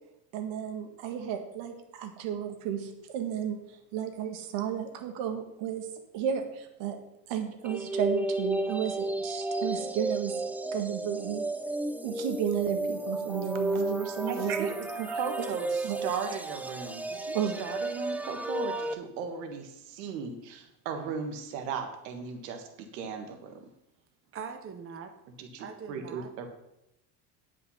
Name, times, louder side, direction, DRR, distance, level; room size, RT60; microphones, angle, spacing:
voice 1, 0.3-5.9 6.1-7.0 7.3-10.4 10.7-11.4 12.0-15.1 15.8-16.0 17.3-17.6, right 9 dB, 65° right, 6 dB, 1.9 m, -33 dB
sound 1, 7.6-18.9, right 2 dB, 5° right, 0.6 m, -33 dB
voice 2, 14.3-14.7 15.1-23.7 25.4-26.5, right 6 dB, 85° right, 6 dB, 1.6 m, -37 dB
voice 3, 24.3-25.1 25.6-26.3, right 6 dB, 25° right, 6 dB, 0.9 m, -41 dB
10.0 x 5.7 x 5.6 m, 0.85 s
supercardioid pair, 110°, 49 cm